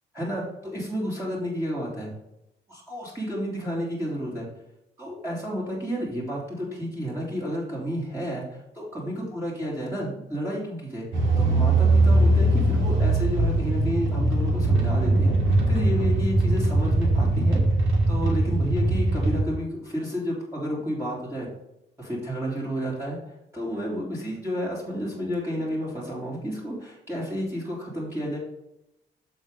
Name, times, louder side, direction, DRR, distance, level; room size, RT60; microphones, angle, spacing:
voice 1, 0.1-2.1 2.7-4.5 5.0-17.6 18.1-21.5 22.0-23.2 23.5-28.4, equal, 10° right, -6 dB, 3.1 m, -31 dB
sound 1, 11.1-19.4, right 2 dB, 80° right, 2.1 m, -21 dB
7.6 x 7.0 x 3.8 m, 0.85 s
cardioid pair, 90°, 20 cm